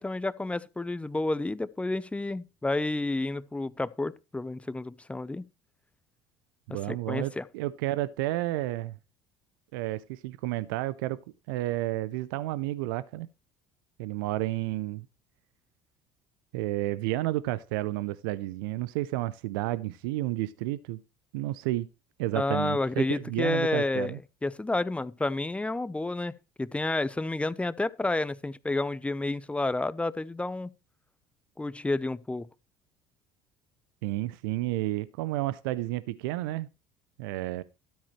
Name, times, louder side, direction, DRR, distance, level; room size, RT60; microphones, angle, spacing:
voice 1, 0.0-5.4 6.9-7.4 22.3-24.1 24.4-26.3 26.6-30.7 31.6-32.5, left 2 dB, 10° left, 0.8 m, -30 dB
voice 2, 6.7-8.9 9.7-11.2 11.5-13.3 14.0-15.1 16.5-21.0 21.3-21.9 22.2-24.2 34.0-36.7 37.2-37.6, right 16 dB, 80° right, 0.5 m, -31 dB
12.5 x 8.5 x 3.2 m
hypercardioid pair, 70°, 11 cm